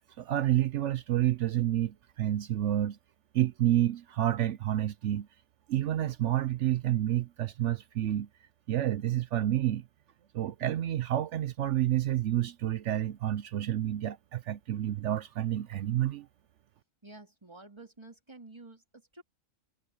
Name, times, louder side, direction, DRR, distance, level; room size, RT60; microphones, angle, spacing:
voice 1, 0.2-3.0 3.3-5.3 5.7-8.3 8.7-9.8 10.3-16.3, right 12 dB, 70° right, 0.9 m, -29 dB
voice 2, 17.0-19.2, right 2 dB, 20° right, 3.3 m, -50 dB
omnidirectional pair, 1.4 m